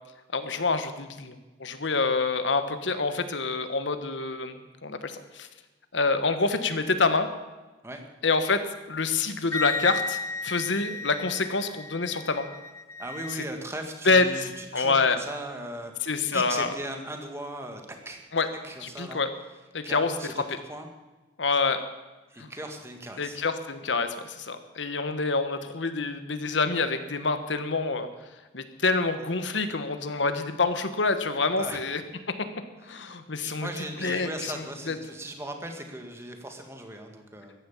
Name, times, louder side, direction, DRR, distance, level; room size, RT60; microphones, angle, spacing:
voice 1, 0.3-5.5 5.9-7.3 8.2-8.6 8.9-12.4 13.3-13.4 14.0-15.2 16.0-16.7 18.3-18.5 18.8-19.3 19.7-20.1 20.5-20.6 21.4-21.8 22.4-22.5 23.2-28.1 28.5-32.0 32.9-33.7 34.0-35.0, left 3 dB, 85° left, 9 dB, 1.3 m, -27 dB
Wind instrument woodwind instrument, 9.5-13.4, left 3 dB, 15° left, 0.4 m, -34 dB
voice 2, 13.0-15.9 16.3-18.2 18.6-19.2 19.8-20.9 22.3-23.4 31.6-31.8 32.9-37.5, right 1 dB, 15° right, 4 dB, 1.8 m, -38 dB
14.5 x 10.5 x 7.2 m, 1.2 s
head